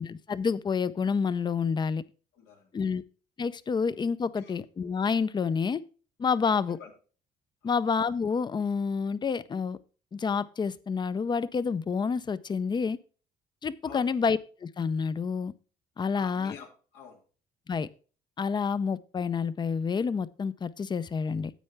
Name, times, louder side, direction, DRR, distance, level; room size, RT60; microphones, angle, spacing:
voice 1, 0.0-2.0 2.7-3.0 3.4-5.8 6.2-6.8 7.6-9.8 10.1-13.0 13.6-15.5 16.0-16.5 17.7-17.9 18.4-21.5, left 5 dB, 25° left, 0.5 m, -28 dB
voice 2, 2.3-2.8 4.4-4.6 6.8-6.9 7.6-7.8 13.8-14.2 16.1-17.2, left 7 dB, 90° left, 2.7 m, -48 dB
10.0 x 7.7 x 3.4 m
cardioid pair, 110°, 17 cm